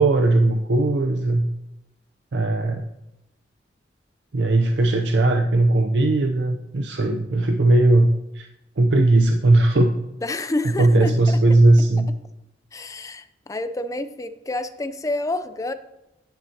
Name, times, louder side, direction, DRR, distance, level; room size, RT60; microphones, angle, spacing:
voice 1, 0.0-1.5 2.3-2.9 4.3-8.5 8.8-9.9 10.8-12.1, right 2 dB, 75° right, 4 dB, 0.6 m, -18 dB
voice 2, 10.2-11.4 12.7-15.7, left 2 dB, 20° left, 10 dB, 0.5 m, -28 dB
10.0 x 9.5 x 2.8 m, 0.92 s
head